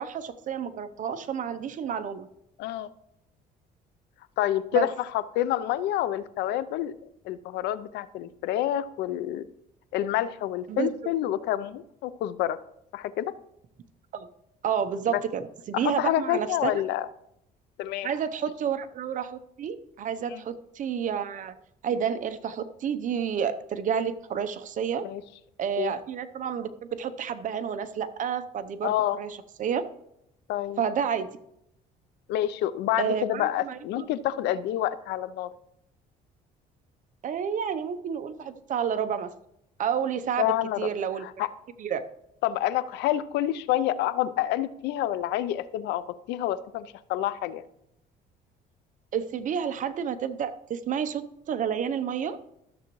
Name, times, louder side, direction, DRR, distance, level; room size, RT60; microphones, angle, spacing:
voice 1, 0.0-2.3 4.7-4.9 10.7-10.9 14.1-14.3 14.6-16.8 18.0-21.5 21.8-25.1 25.6-29.8 30.8-31.4 33.0-34.1 37.2-39.3 39.8-41.3 41.8-42.0 49.1-52.4, right 8 dB, 50° right, 11 dB, 0.8 m, -30 dB
voice 2, 2.6-2.9 4.4-6.9 7.2-9.5 9.9-12.6 12.9-13.3 15.1-15.2 15.7-17.1 17.8-18.1 20.3-20.4 25.0-25.2 25.8-25.9 28.8-29.2 30.5-30.8 32.3-35.5 40.4-40.9 41.2-41.5 42.4-47.6, left 13 dB, 85° left, 15 dB, 0.6 m, -28 dB
13.5 x 7.0 x 3.1 m, 0.78 s
cardioid pair, 110°, 17 cm